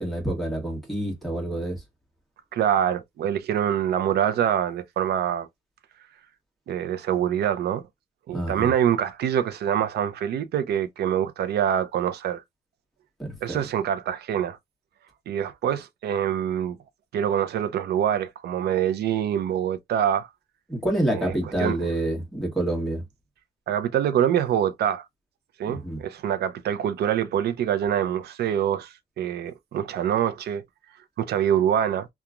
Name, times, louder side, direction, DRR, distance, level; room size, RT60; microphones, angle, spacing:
voice 1, 0.0-1.8 8.3-8.7 13.2-13.6 20.7-23.0 25.6-26.0, right 1 dB, ahead, 1.3 m, -27 dB
voice 2, 2.5-5.5 6.7-7.8 8.3-12.4 13.4-14.6 15.3-16.8 17.1-20.3 21.1-21.8 23.7-25.0 25.6-30.6 31.2-32.1, right 9 dB, 75° right, 0.5 m, -25 dB
2.9 x 2.3 x 2.4 m
cardioid pair, 140°, 17 cm